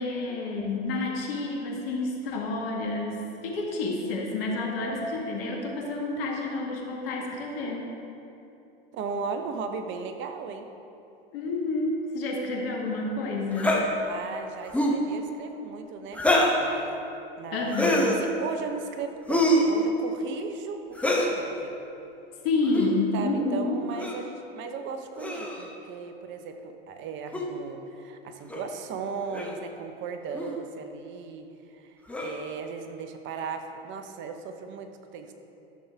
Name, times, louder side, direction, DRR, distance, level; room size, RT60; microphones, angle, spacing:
voice 1, 0.0-7.9 11.3-13.8 17.5-18.1 22.4-23.8, left 2 dB, 65° left, -1 dB, 1.9 m, -29 dB
voice 2, 8.9-10.7 14.1-16.2 16.5-17.1 17.4-17.7 18.1-21.7 23.1-31.5 31.7-35.3, right 5 dB, 35° right, 6 dB, 0.8 m, -37 dB
sound 1, 13.6-13.8 14.7-15.0 16.1-16.6 17.7-18.2 19.3-19.7 21.0-21.4 22.6-22.9 24.0-24.2 25.2-25.7 27.3-27.5 28.5-28.6 29.3-29.6 30.3-30.5 32.1-32.5, left 1 dB, 5° left, 1.1 m, -24 dB
12.5 x 7.0 x 3.6 m, 2.8 s
hypercardioid pair, 90°, 31 cm